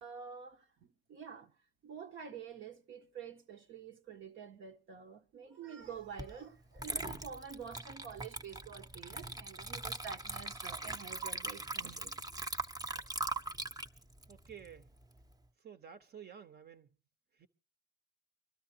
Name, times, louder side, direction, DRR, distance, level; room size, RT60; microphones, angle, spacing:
voice 1, 0.0-1.5 1.8-12.1, right 7 dB, 75° right, 1.5 m, -48 dB
Water / Liquid, 6.2-6.3 6.8-15.3, right 2 dB, 20° right, 0.9 m, -41 dB
voice 2, 14.3-14.9 15.6-16.9 17.4-17.5, right 8 dB, 55° right, 1.2 m, -51 dB
25.0 x 13.0 x 2.9 m
cardioid pair, 90°, 20 cm